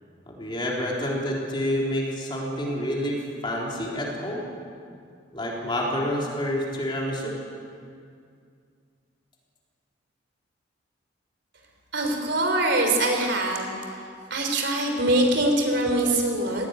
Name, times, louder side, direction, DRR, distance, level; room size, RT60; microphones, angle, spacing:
voice 1, 0.3-4.4 5.3-7.4, equal, 25° left, -3 dB, 3.8 m, -28 dB
voice 2, 11.9-13.7 14.3-16.7, right 1 dB, 60° right, 3 dB, 3.6 m, -23 dB
19.0 x 16.5 x 9.7 m, 2.3 s
head